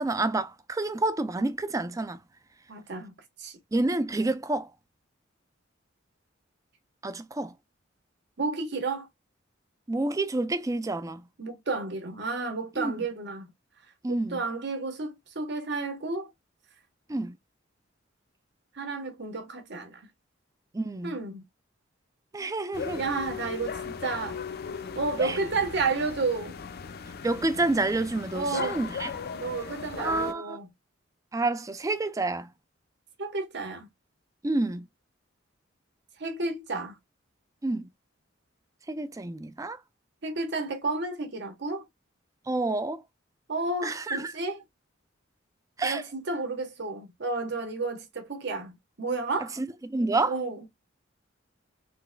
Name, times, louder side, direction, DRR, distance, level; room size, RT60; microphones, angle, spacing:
voice 1, 0.0-2.2 3.7-4.7 7.0-7.5 9.9-11.3 12.8-13.0 14.0-14.4 17.1-17.4 20.7-21.2 22.3-23.0 25.2-25.4 27.2-29.1 30.0-30.6 31.3-32.5 34.4-34.9 37.6-37.9 38.9-39.8 42.5-43.0 43.8-44.3 45.8-46.0 49.6-50.4, right 2 dB, 15° right, 0.4 m, -29 dB
voice 2, 2.7-3.6 8.4-9.1 11.4-13.5 14.1-16.3 18.7-20.1 21.0-21.4 22.9-24.4 24.9-26.6 28.3-28.8 29.3-30.7 33.2-33.9 36.2-37.0 40.2-41.9 43.5-44.6 45.8-49.6 50.3-50.7, right 3 dB, 60° right, 1.1 m, -31 dB
sound 1, 22.7-30.3, left 5 dB, 50° left, 0.5 m, -38 dB
3.9 x 3.2 x 2.2 m
head